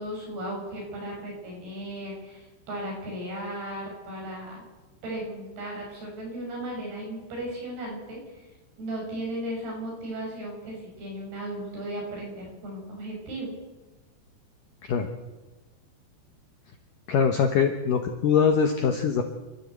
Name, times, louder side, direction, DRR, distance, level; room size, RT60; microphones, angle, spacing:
voice 1, 0.0-4.6 5.0-8.4 8.8-13.5, right 1 dB, 60° right, 0 dB, 8.2 m, -36 dB
voice 2, 17.1-19.2, left 6 dB, 70° left, 5 dB, 2.1 m, -22 dB
28.0 x 13.0 x 8.3 m, 1.1 s
omnidirectional pair, 5.3 m